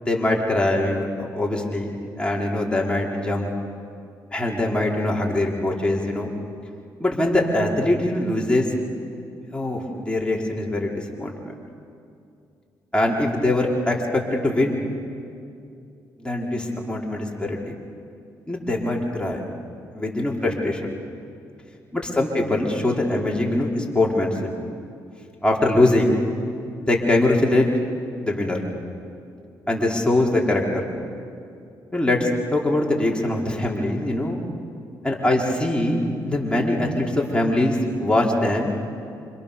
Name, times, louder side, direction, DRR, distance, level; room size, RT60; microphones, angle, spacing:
voice 1, 0.0-3.5 4.3-6.3 7.0-8.7 9.5-11.5 12.9-14.8 16.2-16.6 16.9-17.7 18.5-19.4 19.9-20.9 21.9-24.3 25.4-26.2 26.9-27.7 28.2-28.6 29.7-30.8 31.9-34.4 35.0-38.7, left 1 dB, 10° left, -2 dB, 4.9 m, -22 dB
28.0 x 27.0 x 7.1 m, 2.5 s
supercardioid pair, 60°, 9 cm